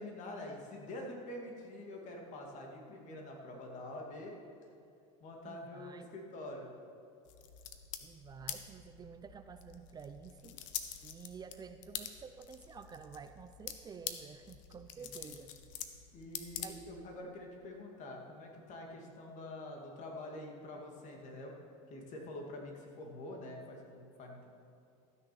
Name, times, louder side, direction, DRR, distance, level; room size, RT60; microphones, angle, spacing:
voice 1, 0.0-4.4 5.2-6.7 15.0-15.4 16.1-21.5 21.9-24.5, left 1 dB, 50° left, 1 dB, 2.4 m, -46 dB
voice 2, 5.4-6.1 8.0-10.6 11.0-15.5 16.6-16.8, right 6 dB, 25° right, 9 dB, 0.5 m, -50 dB
sound 1, 7.2-17.2, left 10 dB, 80° left, 0.9 m, -46 dB
13.5 x 6.5 x 7.0 m, 2.4 s
supercardioid pair, 105°, 16 cm